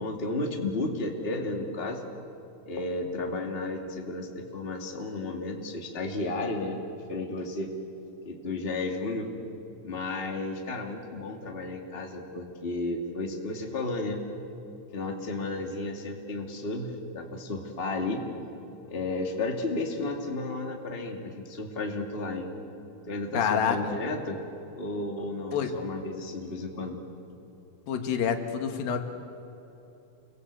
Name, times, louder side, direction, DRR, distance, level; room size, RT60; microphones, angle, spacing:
voice 1, 0.0-2.0 2.6-6.8 7.1-7.7 8.2-9.3 9.8-14.2 14.9-18.2 18.9-22.5 23.1-24.4 24.7-27.0, left 2 dB, 20° left, 2 dB, 2.1 m, -33 dB
voice 2, 23.3-24.0 25.5-25.8 27.9-29.0, left 7 dB, 80° left, 6 dB, 3.5 m, -27 dB
30.0 x 23.0 x 8.3 m, 3.0 s
omnidirectional pair, 4.0 m